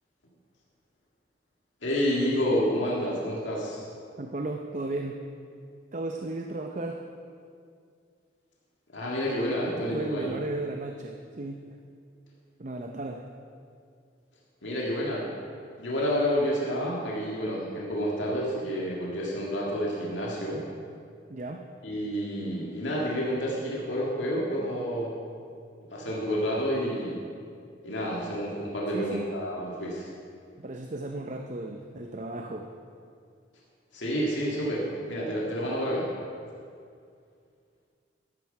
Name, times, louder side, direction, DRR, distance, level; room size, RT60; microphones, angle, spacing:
voice 1, 1.8-3.8 8.9-10.4 14.6-15.3 15.8-20.7 21.8-25.2 25.9-27.3 27.8-30.1 33.9-36.1, equal, 90° left, -4 dB, 2.0 m, -29 dB
voice 2, 4.2-5.2 5.9-7.0 9.7-11.6 12.6-13.3 21.3-21.7 28.9-29.3 30.6-32.7, right 2 dB, 40° right, 4 dB, 0.6 m, -35 dB
12.5 x 9.5 x 5.5 m, 2.3 s
head